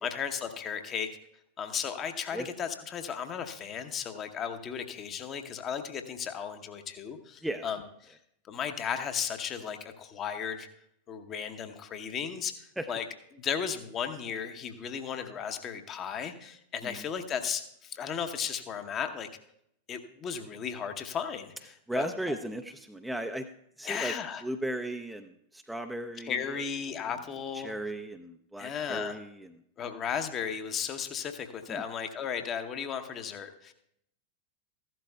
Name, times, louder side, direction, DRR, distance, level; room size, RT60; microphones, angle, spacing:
voice 1, 0.0-1.1 1.6-8.2 8.5-10.7 11.1-13.0 13.3-19.3 19.9-22.3 23.8-24.4 26.2-27.7 28.6-29.2 29.8-33.7, left 7 dB, 30° left, 7 dB, 0.9 m, -35 dB
voice 2, 21.9-23.5 23.8-24.1 24.4-26.3 27.5-29.5 31.7-31.8, right 1 dB, 5° right, 5 dB, 0.5 m, -36 dB
15.0 x 12.0 x 2.3 m, 0.75 s
figure-of-eight pair, 90°, 0 cm